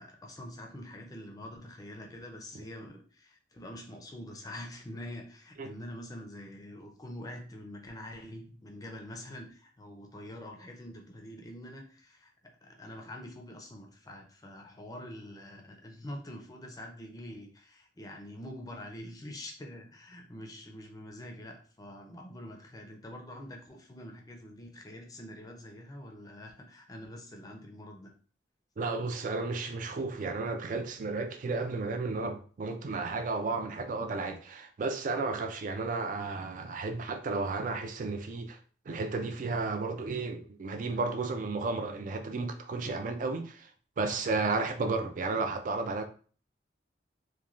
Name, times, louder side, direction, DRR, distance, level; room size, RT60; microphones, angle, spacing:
voice 1, 0.0-28.1 40.9-41.0, left 1 dB, 20° left, 0.4 m, -45 dB
voice 2, 28.8-38.6 38.9-43.7 44.0-46.0, right 3 dB, 45° right, 0.3 m, -33 dB
3.0 x 2.2 x 2.4 m
head